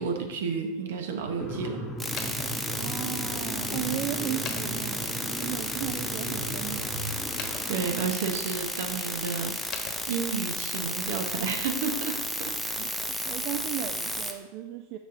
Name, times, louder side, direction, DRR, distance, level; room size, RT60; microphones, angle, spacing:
voice 1, 0.0-1.8 7.7-9.5 10.1-12.7, right 6 dB, 75° right, 5 dB, 0.9 m, -31 dB
sound 1, 1.4-7.9, equal, 15° left, 1.0 m, -36 dB
sound 2, 2.0-10.7, left 6 dB, 45° left, 1.0 m, -46 dB
sound 3, 2.0-14.3, equal, 5° right, 0.5 m, -33 dB
voice 2, 2.8-7.0 12.8-15.0, right 13 dB, 50° right, 7 dB, 0.3 m, -35 dB
6.5 x 6.1 x 2.6 m, 1.1 s
hypercardioid pair, 115°, 0 cm